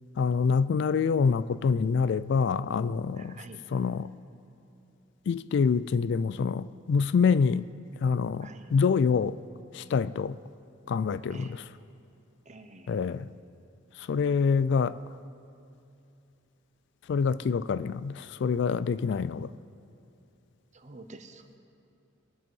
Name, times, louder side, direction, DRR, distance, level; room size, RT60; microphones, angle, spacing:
voice 1, 0.2-3.4 3.7-4.1 5.3-7.7 8.0-9.4 9.7-10.4 10.9-11.6 12.9-13.3 14.0-15.0 17.1-19.5, left 5 dB, 60° left, 17 dB, 0.3 m, -26 dB
voice 2, 3.1-3.7 8.4-8.7 11.3-11.6 12.5-13.0 20.7-21.6, right 2 dB, 35° right, 7 dB, 0.9 m, -48 dB
22.5 x 7.8 x 5.5 m, 2.6 s
head